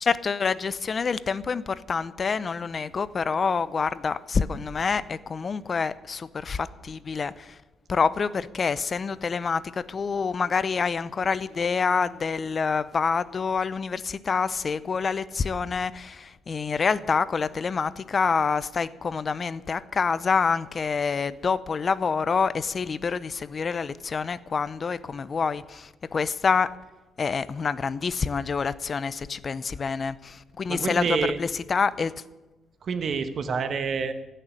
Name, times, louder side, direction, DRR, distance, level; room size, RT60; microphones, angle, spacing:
voice 1, 0.0-7.6 7.9-26.7 27.2-32.1, left 5 dB, 40° left, 0.6 m, -27 dB
voice 2, 30.7-31.4 32.8-34.1, right 5 dB, 55° right, 1.3 m, -27 dB
15.0 x 6.8 x 9.8 m
cardioid pair, 90°, 0 cm